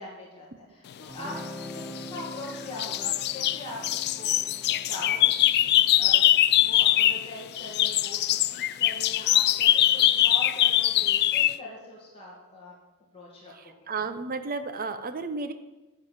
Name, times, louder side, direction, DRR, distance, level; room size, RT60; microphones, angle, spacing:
voice 1, 0.0-6.3 6.6-12.7 13.1-13.5, left 1 dB, 25° left, -6 dB, 2.1 m, -42 dB
Guitar, 1.1-8.2, equal, ahead, 0.8 m, -44 dB
sound 1, 1.6-2.5 2.8-7.3 7.5-11.6, left 13 dB, 50° left, 0.3 m, -22 dB
voice 2, 13.5-15.5, right 4 dB, 40° right, 9 dB, 0.7 m, -33 dB
11.5 x 4.8 x 7.3 m, 1.1 s
head